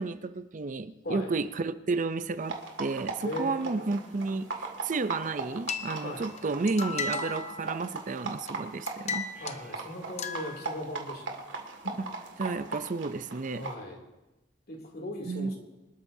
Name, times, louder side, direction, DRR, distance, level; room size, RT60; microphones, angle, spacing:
voice 1, 0.0-4.5 4.8-9.3 12.0-12.1 12.4-13.6 15.3-15.5, right 3 dB, 45° right, 0.5 m, -32 dB
sound 1, 2.4-13.7, right 3 dB, 85° right, 2.1 m, -39 dB
voice 2, 3.2-3.9 6.0-6.3 9.4-11.4 13.5-14.0 14.7-15.6, left 1 dB, 55° left, 2.8 m, -38 dB
sound 2, 5.7-6.4 6.7-8.1 8.5-8.6 8.9-9.6 10.2-10.8, left 5 dB, 40° left, 0.7 m, -35 dB
24.5 x 12.5 x 2.7 m
head